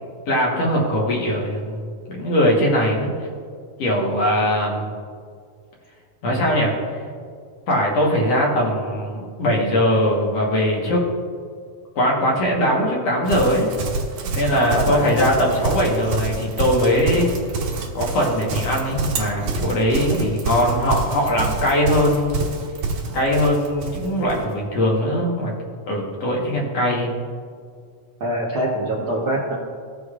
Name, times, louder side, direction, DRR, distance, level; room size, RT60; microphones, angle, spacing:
voice 1, 0.3-1.8 2.1-3.1 3.8-4.9 6.2-7.0 7.7-11.0 12.0-13.7 14.2-17.3 18.0-22.4 23.1-25.5 25.9-27.2, equal, 60° left, -2 dB, 2.2 m, -20 dB
Livestock farm animals working animals, 13.2-24.4, right 3 dB, 80° right, 2.7 m, -27 dB
voice 2, 14.5-15.2 20.1-20.2 28.2-29.6, right 1 dB, 65° right, -5 dB, 1.3 m, -25 dB
16.0 x 6.5 x 2.4 m, 2.1 s
omnidirectional pair, 3.6 m